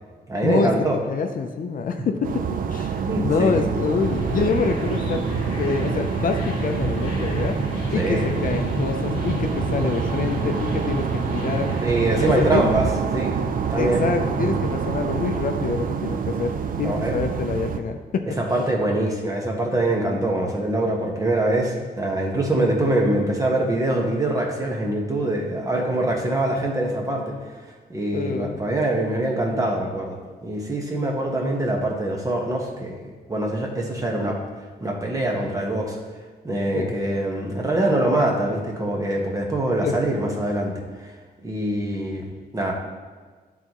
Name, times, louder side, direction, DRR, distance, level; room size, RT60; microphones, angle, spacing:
voice 1, 0.3-1.0 3.0-3.8 7.9-8.3 11.8-12.8 13.1-13.3 13.7-14.0 16.8-17.1 18.4-27.4 27.9-34.4 34.8-36.0 36.4-40.7 41.4-42.2 42.5-42.7, right 1 dB, 20° right, -1 dB, 1.2 m, -24 dB
voice 2, 1.1-2.4 2.7-5.2 5.6-7.6 7.9-11.8 12.3-12.6 13.8-18.4 28.1-28.6 36.7-37.0 39.8-40.0, left 5 dB, 55° left, 5 dB, 0.5 m, -26 dB
sound 1, 2.2-17.8, right 7 dB, 55° right, 0.5 m, -27 dB
sound 2, 3.8-12.7, left 1 dB, 30° left, 1.5 m, -31 dB
12.0 x 4.0 x 3.0 m, 1.4 s
wide cardioid pair, 135°, 17 cm